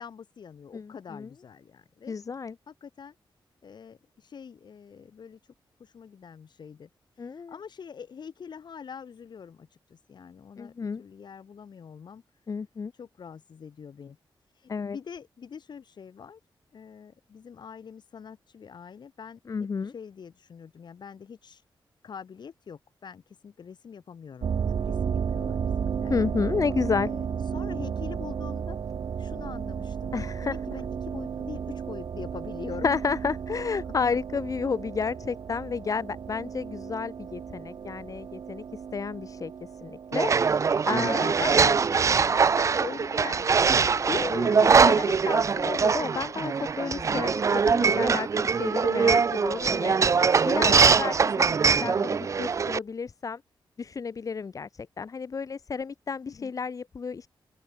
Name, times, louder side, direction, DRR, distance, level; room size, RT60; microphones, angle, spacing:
voice 1, 0.0-2.1 2.7-3.1 3.6-5.4 5.8-6.9 7.1-10.7 11.0-12.2 12.9-14.2 14.5-16.4 16.7-21.6 22.0-24.5 24.8-26.1 26.8-28.8 29.2-30.1 30.4-33.0 42.5-45.2 50.4-52.2 56.3-56.5, left 6 dB, 60° left, 1.2 m, -44 dB
voice 2, 0.7-1.3 2.1-2.6 7.2-7.5 10.6-11.0 12.5-12.9 14.7-15.0 19.5-19.9 26.1-27.1 30.1-30.6 32.8-38.6 38.9-39.5 39.8-40.3 40.8-42.1 44.1-50.0 50.4-53.4 53.8-57.3, left 5 dB, 40° left, 0.8 m, -31 dB
sound 1, 24.4-40.9, right 7 dB, 65° right, 1.2 m, -33 dB
sound 2, 40.1-52.8, right 5 dB, 35° right, 0.4 m, -22 dB
open air
wide cardioid pair, 120°, 9 cm